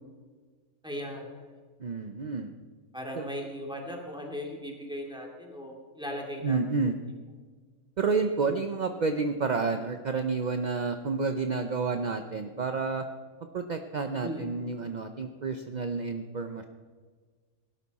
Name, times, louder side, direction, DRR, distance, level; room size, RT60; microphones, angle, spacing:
voice 1, 0.8-1.6 2.9-6.9 8.4-8.5 14.2-14.5, equal, 5° right, 0 dB, 2.4 m, -38 dB
voice 2, 1.8-2.5 3.1-3.3 6.4-7.0 8.0-13.0 13.5-16.7, right 4 dB, 50° right, 6 dB, 0.5 m, -30 dB
18.5 x 12.0 x 4.2 m, 1.5 s
omnidirectional pair, 1.6 m